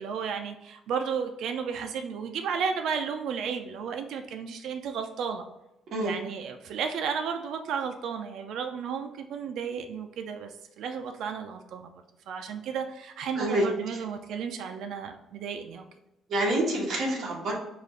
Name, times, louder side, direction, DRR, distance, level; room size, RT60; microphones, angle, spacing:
voice 1, 0.0-5.5 6.0-10.5 10.8-11.9 12.3-15.8, right 6 dB, 65° right, 5 dB, 0.4 m, -33 dB
voice 2, 16.3-17.5, right 1 dB, 50° right, -3 dB, 1.3 m, -27 dB
4.9 x 2.4 x 3.7 m, 0.88 s
cardioid pair, 170°, 0 cm